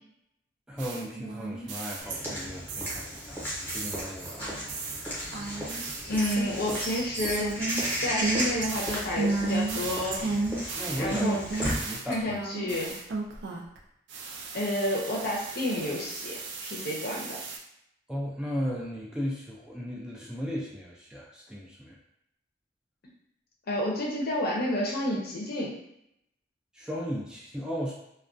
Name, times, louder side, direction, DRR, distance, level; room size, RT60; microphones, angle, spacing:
voice 1, 0.7-4.6 10.8-11.4 11.8-12.4 12.7-12.8 18.1-22.0 26.7-27.9, equal, 5° right, -4 dB, 0.3 m, -36 dB
sound 1, 0.8-2.4 2.7-3.3 3.7-13.8 14.1-17.6, right 3 dB, 75° right, 0.4 m, -34 dB
Walk footsteps / Bird vocalization bird call bird song, 2.0-11.9, equal, 10° left, 0.8 m, -35 dB
voice 2, 6.1-7.6 8.0-10.2 11.0-11.6 12.1-13.0 14.5-17.4 23.7-25.8, left 1 dB, 55° left, -2 dB, 0.6 m, -30 dB
2.3 x 2.2 x 2.5 m, 0.79 s
head